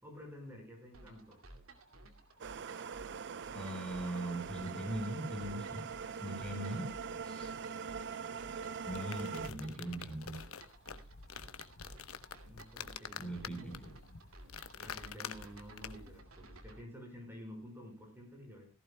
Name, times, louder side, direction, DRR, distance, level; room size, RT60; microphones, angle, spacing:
voice 1, 0.0-1.4 12.5-13.7 14.7-18.7, equal, 10° right, 2 dB, 5.0 m, -51 dB
sound 1, 0.9-16.8, right 2 dB, 80° right, 2.6 m, -56 dB
sound 2, 2.4-9.5, right 6 dB, 55° right, 0.6 m, -42 dB
voice 2, 3.5-5.8 6.2-6.9 7.2-7.5 8.5-8.6 8.9-10.4 13.2-13.7, right 1 dB, 5° left, 1 dB, 4.8 m, -40 dB
sound 3, 8.7-16.2, left 7 dB, 90° left, 1.0 m, -48 dB
17.5 x 15.5 x 2.2 m, 0.26 s
head